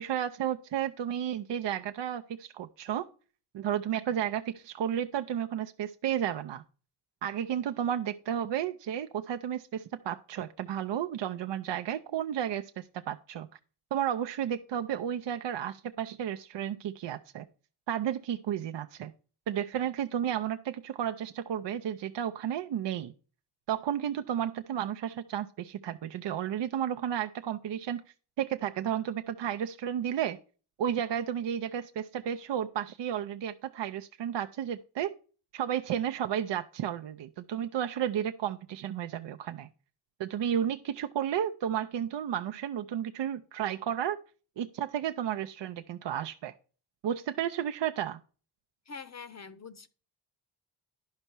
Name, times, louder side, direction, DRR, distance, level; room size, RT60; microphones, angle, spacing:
voice 1, 0.0-3.1 3.5-6.6 7.2-13.5 13.9-17.5 17.9-19.1 19.5-23.1 23.7-28.0 28.4-30.4 30.8-35.1 35.5-39.7 40.2-44.2 44.6-46.5 47.0-48.2, right 10 dB, 60° right, 0.6 m, -32 dB
voice 2, 48.9-49.9, left 5 dB, 35° left, 0.6 m, -44 dB
10.5 x 5.5 x 4.5 m
cardioid pair, 60°, 48 cm